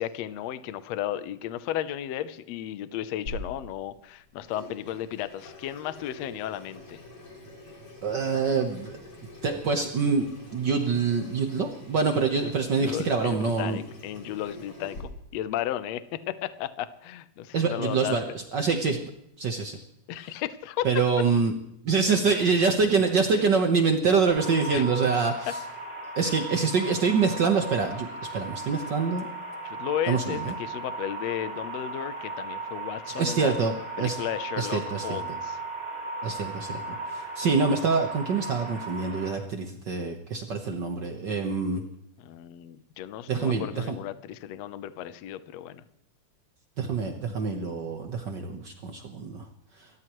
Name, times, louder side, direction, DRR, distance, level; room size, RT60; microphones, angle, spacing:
voice 1, 0.0-7.0 12.8-16.0 16.3-18.2 18.6-18.7 20.1-20.9 24.7-24.8 29.6-33.5 34.0-35.6 42.2-45.8, left 12 dB, 75° left, 12 dB, 1.6 m, -34 dB
Water tap faucet / Sink (filling or washing), 3.3-15.0, left 1 dB, 35° left, 7.4 m, -45 dB
voice 2, 8.0-9.0 9.4-13.8 17.5-19.0 19.4-19.8 20.2-20.3 20.8-21.5 21.8-25.6 26.2-29.3 30.1-30.5 33.1-34.2 34.6-35.2 36.2-41.8 43.3-44.0 46.8-49.4, right 5 dB, 90° right, 4 dB, 0.9 m, -26 dB
sound 1, 24.3-39.3, right 3 dB, 15° right, 7.9 m, -37 dB
29.5 x 13.5 x 3.1 m, 0.77 s
omnidirectional pair, 4.0 m